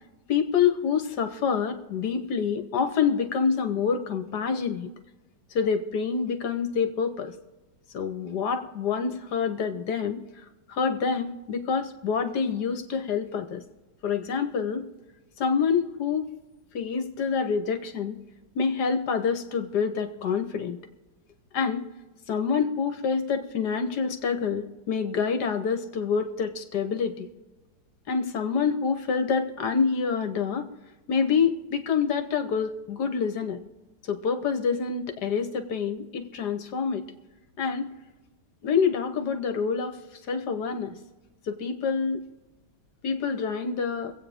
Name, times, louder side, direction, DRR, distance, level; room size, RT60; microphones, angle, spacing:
voice 1, 0.3-4.9 5.5-7.3 7.9-13.6 14.0-14.9 15.4-16.3 16.7-18.2 18.5-20.8 21.5-21.9 22.3-27.3 28.1-30.7 31.1-33.6 34.0-37.0 37.6-37.9 38.6-40.0 40.3-41.0 41.5-42.2 43.0-44.1, left 6 dB, 65° left, 7 dB, 1.5 m, -27 dB
24.5 x 8.5 x 3.5 m, 1.1 s
omnidirectional pair, 2.0 m